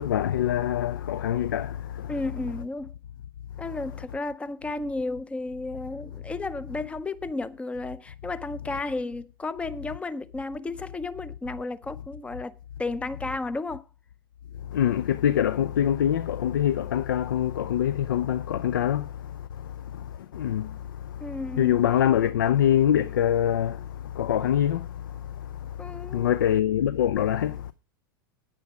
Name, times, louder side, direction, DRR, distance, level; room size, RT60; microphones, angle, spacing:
voice 1, 0.0-2.1 14.7-27.7, left 10 dB, 65° left, 0.4 m, -25 dB
voice 2, 2.1-2.9 3.6-13.8 21.2-21.8 25.8-26.4, left 2 dB, 10° left, 0.6 m, -33 dB
10.0 x 8.9 x 4.9 m
figure-of-eight pair, 90°, 12 cm